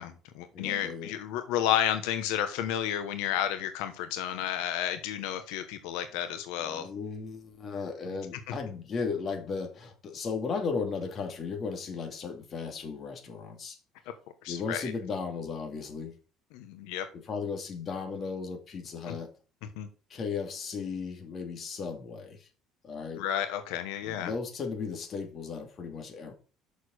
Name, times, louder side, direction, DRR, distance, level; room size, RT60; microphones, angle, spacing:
voice 1, 0.0-6.9 8.1-8.2 14.4-14.8 16.5-17.1 19.1-19.2 19.8-19.9 23.2-24.3, left 10 dB, 90° left, 1.1 m, -31 dB
voice 2, 0.5-1.1 6.6-13.8 14.5-16.1 17.1-19.3 20.1-22.5 22.8-23.2 24.0-26.3, left 5 dB, 35° left, 2.4 m, -36 dB
6.7 x 6.6 x 6.4 m
cardioid pair, 140°, 0 cm